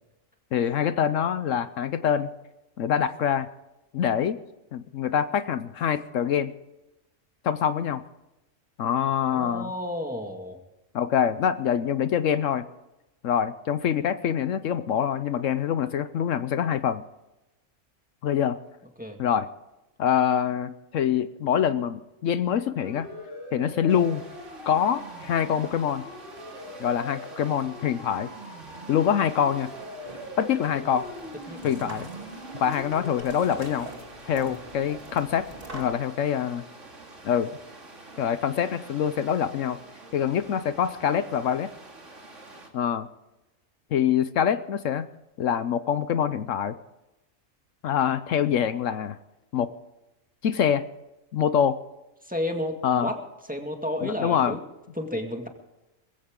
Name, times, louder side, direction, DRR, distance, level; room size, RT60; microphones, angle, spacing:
voice 1, 0.5-2.3 2.8-3.5 3.9-4.4 4.7-6.5 7.4-8.0 8.8-9.7 10.9-12.6 13.2-17.0 18.2-18.6 19.2-19.5 20.0-23.1 23.5-24.2 24.7-26.0 26.8-28.3 28.9-29.7 30.4-31.1 31.6-32.1 32.6-33.9 34.3-35.5 35.7-36.6 37.2-37.5 38.2-39.8 40.1-41.7 42.7-43.1 43.9-45.1 45.4-46.8 47.8-49.2 49.5-49.7 50.4-50.8 51.3-51.8 52.8-53.1 54.0-54.6, left 8 dB, 75° left, 12 dB, 1.1 m, -25 dB
voice 2, 9.2-10.6 19.0-19.2 31.5-31.7 52.3-53.2 53.5-54.6 55.0-55.5, left 1 dB, 5° right, 3 dB, 1.9 m, -31 dB
Siren, 22.8-33.2, equal, 55° left, 6.3 m, -42 dB
sound 1, 23.9-42.7, right 2 dB, 65° right, 2.8 m, -47 dB
sound 2, 29.3-35.8, right 1 dB, 45° right, 2.7 m, -44 dB
21.0 x 15.5 x 3.8 m, 0.97 s
omnidirectional pair, 1.4 m